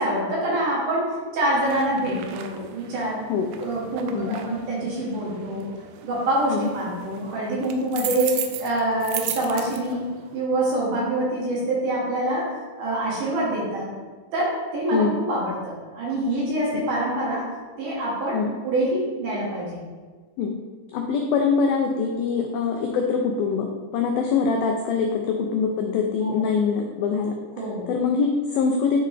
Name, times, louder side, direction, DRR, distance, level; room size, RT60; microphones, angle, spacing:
voice 1, 0.0-3.3 3.6-5.7 6.0-10.1 10.3-13.9 14.3-17.5 17.8-19.8 26.2-26.4 27.6-27.9, right 1 dB, 65° right, -5 dB, 2.4 m, -25 dB
sound 1, 1.6-10.5, right 10 dB, 85° right, 2.7 m, -37 dB
voice 2, 4.1-4.6 6.5-6.7 14.9-15.2 16.7-16.8 18.3-18.5 20.4-20.6 20.9-29.0, left 5 dB, 90° left, 3 dB, 2.1 m, -24 dB
10.0 x 3.7 x 3.3 m, 1.4 s
omnidirectional pair, 4.8 m